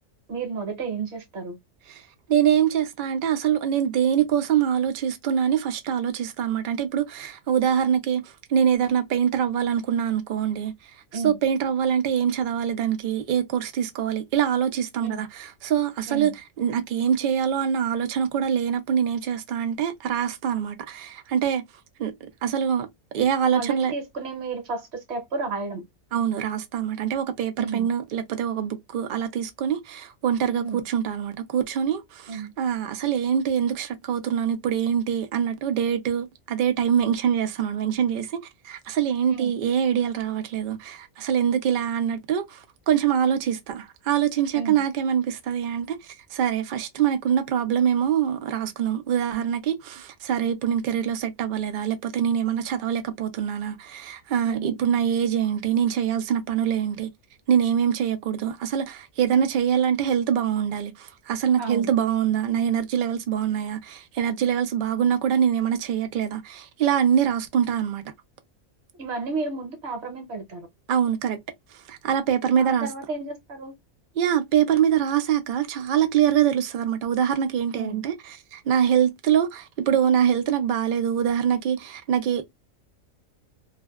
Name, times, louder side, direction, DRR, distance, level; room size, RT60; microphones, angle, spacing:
voice 1, 0.3-1.6 11.1-11.4 15.0-15.3 16.1-16.3 23.5-25.8 27.6-27.9 30.6-30.8 32.3-32.5 39.3-39.5 44.5-44.8 54.4-54.8 61.6-61.9 69.0-70.7 72.6-73.7 77.7-78.0, right 4 dB, 55° right, 1.0 m, -32 dB
voice 2, 2.3-10.7 11.1-21.6 22.0-22.9 23.1-23.9 26.1-38.4 38.6-57.1 57.5-68.0 70.9-71.4 71.9-72.9 74.2-78.1 78.5-82.4, right 8 dB, 90° right, 0.4 m, -24 dB
2.5 x 2.1 x 2.3 m
omnidirectional pair, 1.4 m